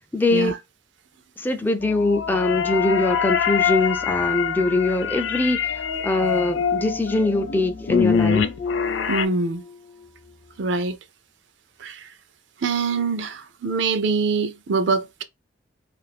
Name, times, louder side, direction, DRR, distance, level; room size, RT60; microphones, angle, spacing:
voice 1, 0.1-0.6 1.4-8.5, left 2 dB, 10° left, 0.3 m, -22 dB
sound 1, 1.8-9.3, left 7 dB, 85° left, 0.4 m, -25 dB
sound 2, 6.0-10.9, left 5 dB, 35° left, 0.8 m, -36 dB
voice 2, 9.1-9.6 10.6-11.0 11.8-12.1 12.6-15.2, right 4 dB, 80° right, 0.5 m, -24 dB
2.5 x 2.4 x 3.3 m
head